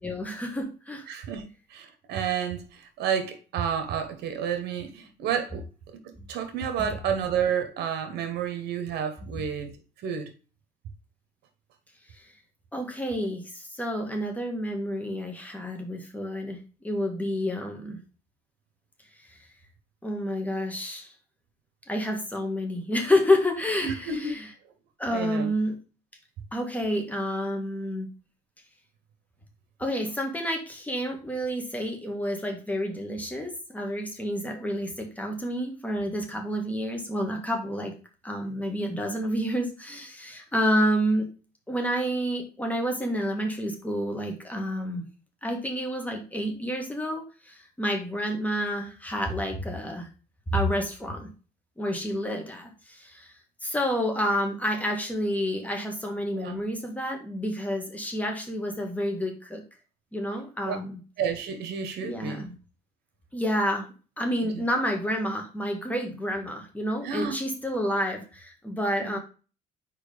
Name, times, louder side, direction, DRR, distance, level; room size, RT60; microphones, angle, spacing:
voice 1, 0.0-1.1 6.2-6.3 6.8-6.9 9.4-9.5 12.1-12.2 12.7-16.6 16.8-18.0 19.3-19.4 20.0-21.1 21.9-24.5 25.0-25.8 26.5-28.1 29.8-37.9 38.2-41.3 41.7-45.0 45.4-50.1 50.5-51.3 51.8-53.3 53.6-59.6 60.1-61.0 62.0-62.6 63.3-69.2, equal, 10° left, 1.8 m, -29 dB
voice 2, 1.1-1.4 1.7-5.6 6.0-9.8 10.0-10.3 23.8-24.3 25.1-25.5 56.4-56.6 60.7-60.8 61.2-62.5 64.4-64.6 67.0-67.3 69.0-69.2, right 7 dB, 75° right, 1.3 m, -30 dB
4.7 x 4.5 x 5.0 m
cardioid pair, 110°, 17 cm